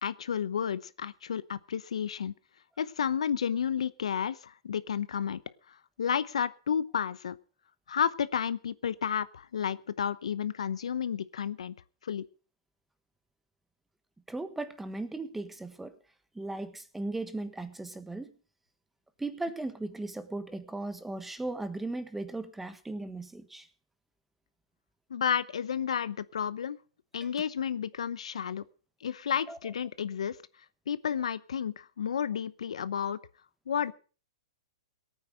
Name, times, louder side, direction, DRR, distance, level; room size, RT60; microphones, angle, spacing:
voice 1, 0.0-2.3 2.8-5.4 5.7-7.4 7.9-11.7 12.0-12.3 25.1-26.8 27.1-28.6 29.0-30.4 30.9-33.2 33.7-33.9, left 8 dB, 80° left, 17 dB, 0.8 m, -31 dB
voice 2, 14.3-15.9 16.3-18.3 19.2-23.7 27.2-27.3 29.5-29.6, right 2 dB, 5° right, 12 dB, 1.3 m, -37 dB
17.5 x 9.3 x 6.3 m, 0.39 s
hypercardioid pair, 130°, 3 cm